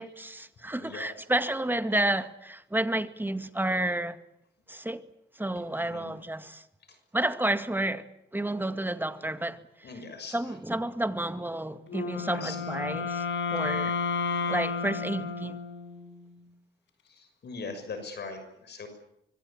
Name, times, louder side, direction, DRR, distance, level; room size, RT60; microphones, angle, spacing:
voice 1, 0.0-4.2 4.7-5.1 5.4-6.6 7.1-8.1 8.3-9.9 10.3-13.3 13.5-14.0 14.5-15.6, right 1 dB, 10° right, 2.1 m, -30 dB
voice 2, 0.8-1.1 5.8-6.1 9.8-10.4 12.1-12.6 13.7-13.8 14.3-14.5 17.1-18.9, left 4 dB, 60° left, 6.3 m, -41 dB
Wind instrument woodwind instrument, 11.9-16.1, left 5 dB, 80° left, 7.5 m, -32 dB
25.5 x 22.0 x 8.8 m
cardioid pair, 75°, 19 cm